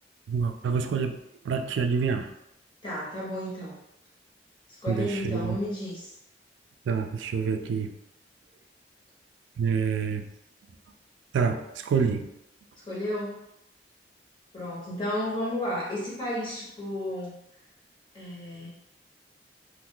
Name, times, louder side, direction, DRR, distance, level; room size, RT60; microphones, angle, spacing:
voice 1, 0.3-1.2 1.4-2.3 4.9-5.6 6.9-7.9 9.6-10.3 11.3-12.3, right 6 dB, 90° right, 7 dB, 0.3 m, -27 dB
voice 2, 2.8-3.8 4.8-6.1 12.9-13.4 14.5-17.3 18.1-18.7, left 1 dB, 25° left, -7 dB, 1.2 m, -32 dB
2.5 x 2.3 x 3.7 m, 0.84 s
head